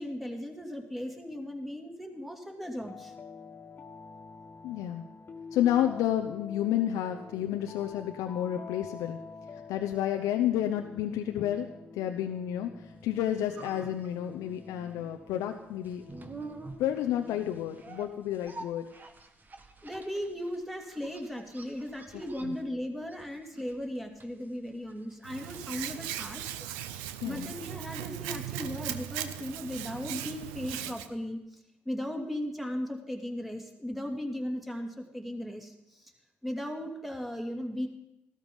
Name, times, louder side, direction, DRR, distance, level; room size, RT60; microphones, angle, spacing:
voice 1, 0.0-3.1 19.8-26.5 27.2-36.1 36.4-37.9, equal, ahead, 3 dB, 2.7 m, -37 dB
sound 1, 2.8-18.5, left 4 dB, 40° left, 1.8 m, -48 dB
voice 2, 4.6-5.0 5.5-9.2 9.7-11.7 11.9-16.0 16.8-18.9 22.4-22.6 27.2-27.5, left 11 dB, 75° left, 5 dB, 0.8 m, -30 dB
sound 2, 13.0-31.0 31.3-31.4, right 3 dB, 30° right, 1.8 m, -50 dB
Hands, 25.2-31.1, right 12 dB, 85° right, 0.7 m, -38 dB
14.5 x 13.0 x 5.4 m, 0.87 s
hypercardioid pair, 55°, 6 cm